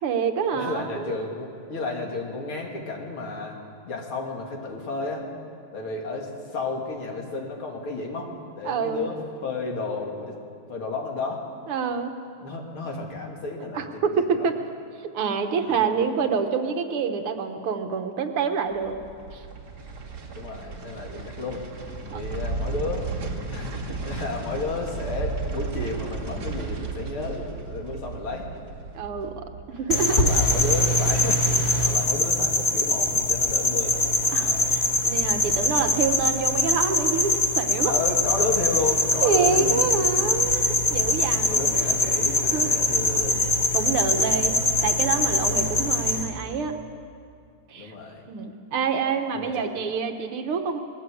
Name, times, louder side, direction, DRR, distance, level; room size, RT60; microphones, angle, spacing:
voice 1, 0.0-1.2 8.6-9.1 11.7-12.2 13.7-14.6 15.0-19.0 19.3-19.4 22.1-22.3 28.9-30.3 34.3-37.9 39.2-41.8 42.5-42.7 43.7-46.8 47.7-47.9 48.3-50.8, right 6 dB, 80° right, 6 dB, 2.1 m, -27 dB
voice 2, 0.5-3.6 3.8-5.3 5.7-10.4 10.7-11.4 12.4-14.5 15.6-15.9 20.4-21.6 22.1-23.1 23.5-28.5 30.1-34.8 37.9-39.9 40.2-40.8 41.2-43.4 44.2-44.3 47.7-48.2 49.3-49.7, left 3 dB, 75° left, 0 dB, 3.4 m, -32 dB
sound 1, 18.7-31.9 32.2-32.3, right 4 dB, 50° right, 2.8 m, -35 dB
sound 2, 29.9-46.2, left 2 dB, 30° left, 2.3 m, -23 dB
20.0 x 16.0 x 8.5 m, 2.3 s
omnidirectional pair, 2.4 m